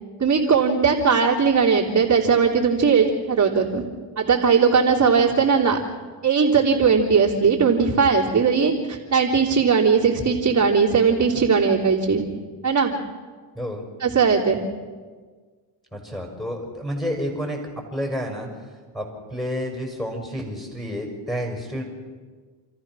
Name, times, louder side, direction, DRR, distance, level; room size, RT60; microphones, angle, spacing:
voice 1, 0.2-3.8 4.2-5.8 6.2-12.2 12.6-12.9 14.0-14.6, right 5 dB, 35° right, -5 dB, 3.4 m, -19 dB
voice 2, 15.9-17.6 17.9-18.5 18.9-21.8, equal, 10° left, 0 dB, 6.0 m, -29 dB
29.0 x 14.0 x 6.3 m, 1.5 s
supercardioid pair, 85°, 48 cm